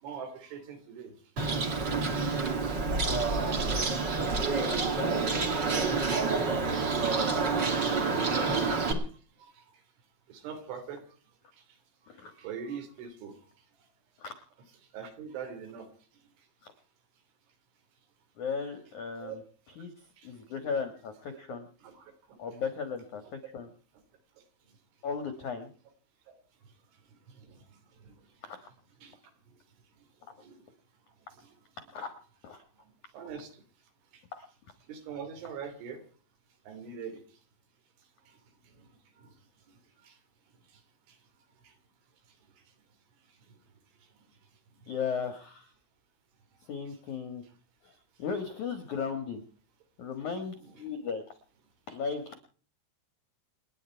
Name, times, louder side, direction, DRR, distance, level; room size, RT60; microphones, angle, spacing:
voice 1, 0.0-1.1 1.4-1.6 2.0-2.1 9.4-9.6 10.3-11.0 12.2-13.4 14.9-15.9 19.2-19.4 20.2-20.6 21.8-22.1 27.3-27.6 28.0-28.2 29.0-29.2 30.4-30.6 31.4-31.5 32.0-32.1 33.1-33.5 34.9-36.0 36.7-37.2 38.8-38.9 39.2-39.3 40.1-40.2 41.6-41.7 50.6-50.9, right 7 dB, 70° right, 7 dB, 5.3 m, -43 dB
Bird, 1.4-8.9, right 4 dB, 40° right, 1.6 m, -28 dB
voice 2, 4.5-5.5 12.1-12.3 14.2-14.3 18.4-19.4 19.8-21.7 22.4-23.7 25.0-25.7 28.4-28.7 31.9-32.1 32.4-32.6 34.3-34.5 44.9-45.7 46.7-47.4 47.8-47.9 48.2-49.4 50.0-51.2 51.9-52.4, left 6 dB, 65° left, 8 dB, 1.9 m, -36 dB
29.0 x 10.5 x 4.5 m, 0.43 s
omnidirectional pair, 5.8 m